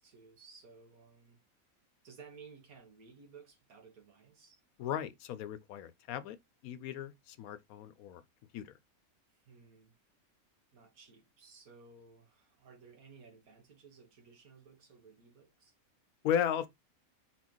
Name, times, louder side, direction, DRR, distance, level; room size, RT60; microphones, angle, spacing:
voice 1, 0.0-1.4 2.0-4.6 9.3-10.0 10.7-15.7, right 5 dB, 80° right, 1.9 m, -57 dB
voice 2, 4.8-6.4 6.6-8.2 8.5-8.7 16.2-16.7, left 9 dB, 80° left, 1.1 m, -35 dB
4.2 x 4.2 x 3.0 m
omnidirectional pair, 1.5 m